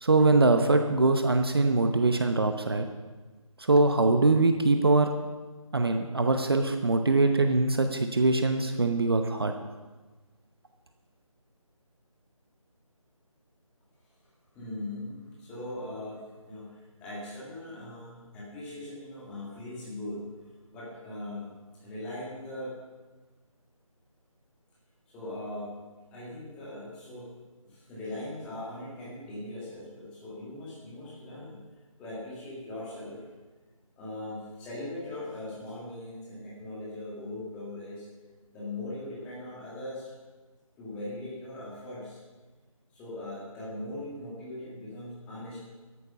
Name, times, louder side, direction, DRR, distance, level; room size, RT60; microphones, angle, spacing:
voice 1, 0.0-2.9 3.6-5.1 5.7-9.5, right 3 dB, 45° right, 6 dB, 0.9 m, -23 dB
voice 2, 14.5-20.2 20.7-21.5 21.8-22.8 25.1-25.8 26.1-27.3 27.6-31.6 32.0-33.2 34.0-38.1 38.5-40.1 40.8-42.2 42.9-45.6, left 1 dB, 5° left, -7 dB, 1.9 m, -40 dB
13.0 x 11.5 x 5.6 m, 1.3 s
figure-of-eight pair, 165°, 18 cm